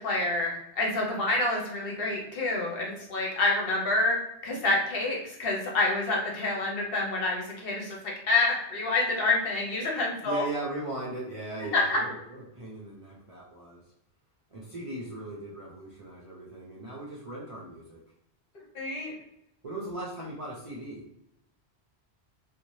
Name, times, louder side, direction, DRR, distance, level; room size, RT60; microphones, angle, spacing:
voice 1, 0.0-4.2 4.4-10.4 11.7-12.0 18.7-19.1, left 2 dB, 60° left, -1 dB, 0.9 m, -27 dB
voice 2, 10.2-13.8 14.5-18.0 19.6-21.1, right 2 dB, 45° right, -6 dB, 0.5 m, -38 dB
2.7 x 2.1 x 3.0 m, 0.80 s
omnidirectional pair, 1.1 m